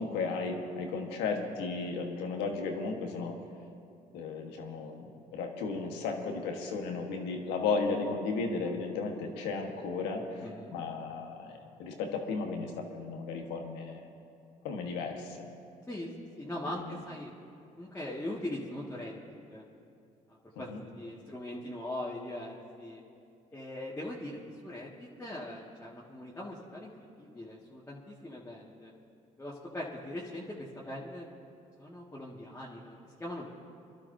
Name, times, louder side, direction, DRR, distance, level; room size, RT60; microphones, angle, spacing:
voice 1, 0.0-3.4 4.1-10.5 10.7-14.1 14.6-15.5 16.7-17.0 20.5-20.8, left 4 dB, 85° left, 3 dB, 1.5 m, -35 dB
voice 2, 10.4-10.7 15.9-16.1 16.4-17.3 17.8-19.2 19.5-19.6 20.3-23.0 23.5-26.9 27.2-28.9 29.4-31.3 31.8-33.5, left 1 dB, 15° left, -6 dB, 2.1 m, -41 dB
26.0 x 12.0 x 2.8 m, 2.5 s
supercardioid pair, 70°, 17 cm